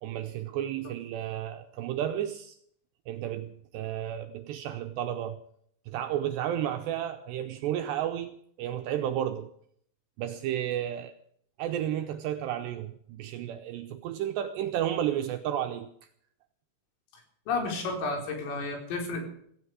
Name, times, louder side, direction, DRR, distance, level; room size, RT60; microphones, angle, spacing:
voice 1, 0.0-2.6 3.1-5.4 5.9-9.5 10.2-11.2 11.6-15.9, right 11 dB, 80° right, 2.5 m, -32 dB
voice 2, 17.5-19.2, left 3 dB, 85° left, 7.1 m, -31 dB
17.0 x 16.0 x 4.9 m
omnidirectional pair, 5.8 m